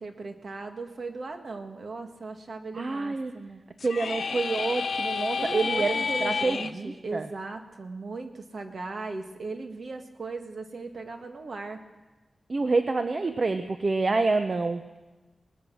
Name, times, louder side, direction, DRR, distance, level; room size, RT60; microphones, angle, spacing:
voice 1, 0.0-3.6 5.4-11.8, right 3 dB, 60° right, 5 dB, 1.9 m, -37 dB
voice 2, 2.7-3.3 3.8-7.3 12.5-14.8, right 3 dB, 40° right, 8 dB, 0.7 m, -27 dB
sound 1, 3.8-6.7, left 5 dB, 80° left, 0.9 m, -30 dB
21.5 x 19.5 x 6.3 m, 1.2 s
wide cardioid pair, 125°, 0 cm